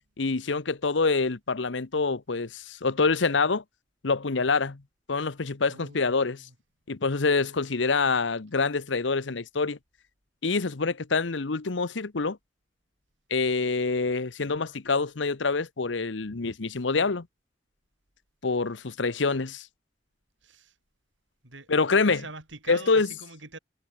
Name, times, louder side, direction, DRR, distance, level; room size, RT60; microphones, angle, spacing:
voice 1, 0.2-3.6 4.0-4.8 5.1-6.4 6.9-9.8 10.4-12.4 13.3-17.3 18.4-19.7 21.7-22.2 22.7-23.1, left 4 dB, 75° left, 1.0 m, -26 dB
voice 2, 5.7-6.6 20.4-20.8 21.4-21.7 22.0-23.6, right 3 dB, 85° right, 7.9 m, -44 dB
head